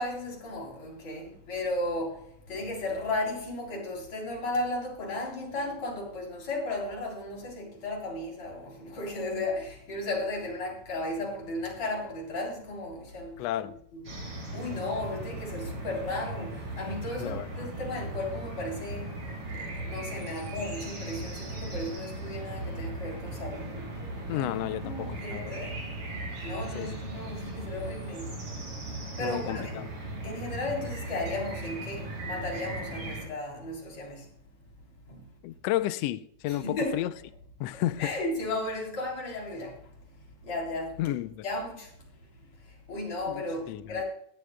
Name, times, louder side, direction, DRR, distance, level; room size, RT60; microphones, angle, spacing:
voice 1, 0.0-14.0 14.5-19.2 19.5-23.8 24.3-25.8 26.4-29.9 30.2-34.3 35.1-35.3 36.5-37.0 37.7-41.0 41.4-44.0, left 2 dB, 55° left, 4.8 m, -35 dB
voice 2, 13.4-13.7 17.2-17.7 24.3-25.6 26.7-27.0 29.2-29.9 35.4-37.1 37.6-38.1 41.0-41.4 43.3-44.0, left 14 dB, 85° left, 1.5 m, -32 dB
sound 1, 14.0-33.2, right 2 dB, 50° right, 4.8 m, -38 dB
18.0 x 12.5 x 2.2 m
omnidirectional pair, 3.4 m